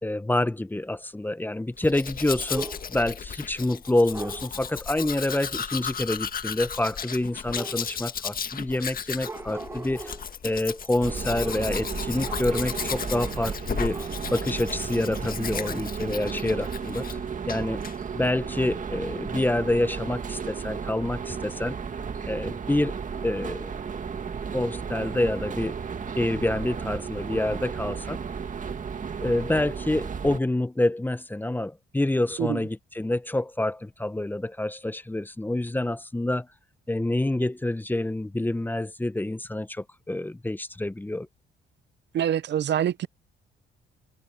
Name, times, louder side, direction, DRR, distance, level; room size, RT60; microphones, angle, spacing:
voice 1, 0.0-10.1 10.4-17.0 17.5-17.8 18.1-21.8 22.3-23.7 24.5-25.7 26.2-28.2 29.2-36.5 36.9-41.3, left 1 dB, 10° left, 0.9 m, -27 dB
Domestic sounds home sounds, 1.8-17.2 17.5-17.9, left 7 dB, 45° left, 1.7 m, -35 dB
sound 1, 2.5-3.1 4.1-4.5 7.5-8.2 9.1-10.3 11.4-11.8 12.2-13.3 13.6-14.1, right 3 dB, 10° right, 0.4 m, -39 dB
sound 2, 11.0-30.4, right 6 dB, 40° right, 1.9 m, -34 dB
voice 2, 42.1-43.1, right 10 dB, 60° right, 0.7 m, -25 dB
cardioid pair, 90°, 20 cm